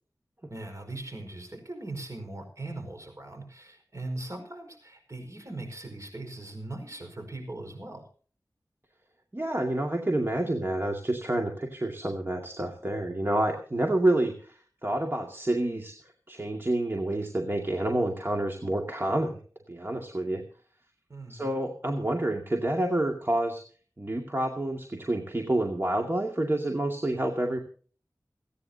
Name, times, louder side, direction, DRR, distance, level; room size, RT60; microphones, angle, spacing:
voice 1, 0.5-8.0 21.1-21.6, right 2 dB, 50° right, 4 dB, 5.2 m, -40 dB
voice 2, 9.3-15.9 16.3-19.4 19.7-20.4 21.3-23.6 24.0-27.6, right 1 dB, 35° right, 2 dB, 2.2 m, -28 dB
29.5 x 9.8 x 2.8 m, 0.43 s
wide cardioid pair, 60°, 7 cm